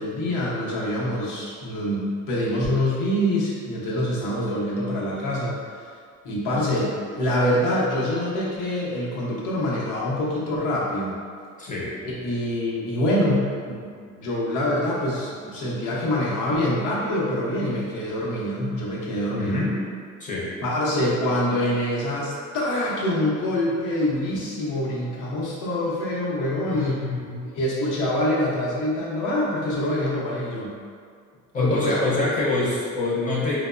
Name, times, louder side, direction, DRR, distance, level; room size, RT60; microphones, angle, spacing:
voice 1, 0.0-5.6 6.2-11.2 12.2-19.6 20.6-27.0 27.5-30.7 31.5-31.9, left 1 dB, 85° left, -5 dB, 0.7 m, -25 dB
voice 2, 11.6-12.0 19.3-19.8 20.2-20.5 26.6-27.4 31.5-33.6, left 2 dB, 25° left, -7 dB, 0.5 m, -26 dB
2.9 x 2.0 x 2.3 m, 2.1 s
cardioid pair, 145°, 30 cm